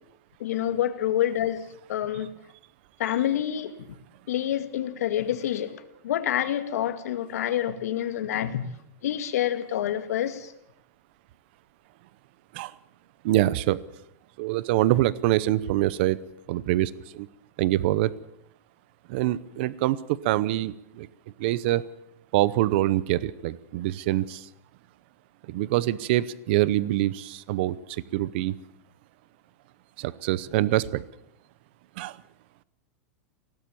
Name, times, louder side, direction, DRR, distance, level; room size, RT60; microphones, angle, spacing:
voice 1, 0.4-1.6 1.9-2.3 3.0-3.7 4.3-8.7 9.0-10.5, left 11 dB, 80° left, 10 dB, 2.0 m, -27 dB
voice 2, 13.2-13.8 14.4-16.2 16.5-17.3 17.6-18.1 19.1-21.1 21.4-21.9 22.3-24.5 25.5-28.6 30.0-31.0 32.0-32.2, right 15 dB, 45° right, 19 dB, 0.7 m, -25 dB
22.5 x 17.5 x 7.0 m, 0.79 s
supercardioid pair, 175°, 8 cm